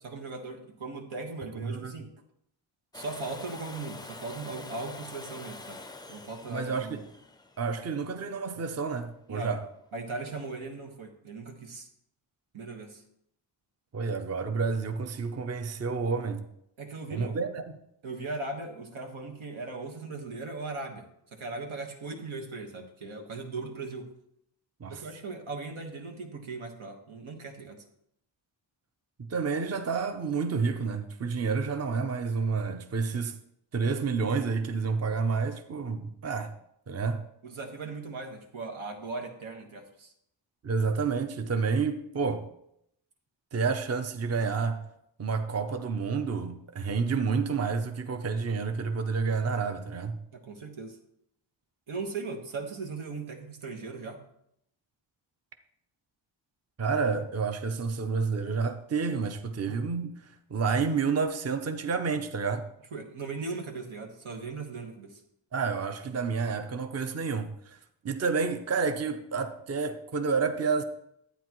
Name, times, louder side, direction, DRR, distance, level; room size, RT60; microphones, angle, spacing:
voice 1, 0.0-2.1 2.9-5.8 6.1-7.0 9.3-9.5 9.9-11.9 12.5-13.0 16.8-17.4 18.0-24.1 24.9-27.8 37.4-40.1 50.3-51.0 51.9-54.2 62.9-65.2, right 3 dB, 90° right, 1.5 m, -38 dB
voice 2, 1.6-2.0 6.5-7.0 7.6-9.6 13.9-16.4 17.1-17.6 24.8-25.0 29.2-33.3 33.7-36.5 36.9-37.2 40.6-42.5 43.5-44.8 45.2-50.2 56.8-62.6 65.5-67.8 68.0-70.8, right 5 dB, 35° right, 0.6 m, -29 dB
Domestic sounds home sounds, 2.9-8.7 10.7-10.8, left 3 dB, 10° left, 0.3 m, -46 dB
11.5 x 8.9 x 3.0 m
wide cardioid pair, 155°, 47 cm